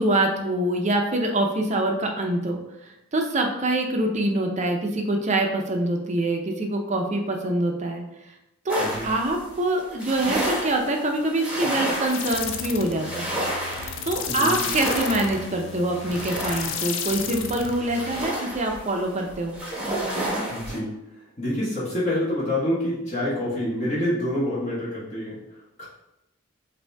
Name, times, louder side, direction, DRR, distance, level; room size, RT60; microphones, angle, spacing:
voice 1, 0.0-8.3 8.6-13.3 14.0-19.6, right 1 dB, 35° right, 3 dB, 0.6 m, -25 dB
sound 1, 8.7-20.8, right 1 dB, 5° right, 1.1 m, -31 dB
sound 2, 12.1-18.4, left 7 dB, 65° left, 0.4 m, -33 dB
voice 2, 14.3-14.7 20.5-20.9 21.1-25.9, left 1 dB, 35° left, -9 dB, 1.3 m, -27 dB
5.3 x 2.7 x 3.4 m, 0.90 s
head